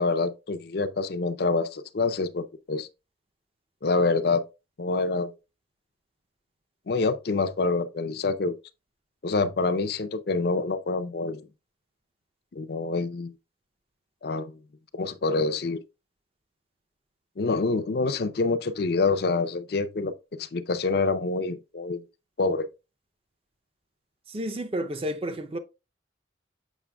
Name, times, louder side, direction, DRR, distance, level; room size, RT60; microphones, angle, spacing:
voice 1, 0.0-2.9 3.8-4.4 4.8-5.3 6.9-8.5 9.2-11.5 12.5-13.3 14.2-14.6 14.9-15.8 17.4-22.0 22.4-22.6, left 3 dB, 55° left, 0.5 m, -26 dB
voice 2, 24.3-25.6, equal, 30° right, 0.5 m, -31 dB
7.2 x 5.8 x 2.2 m
head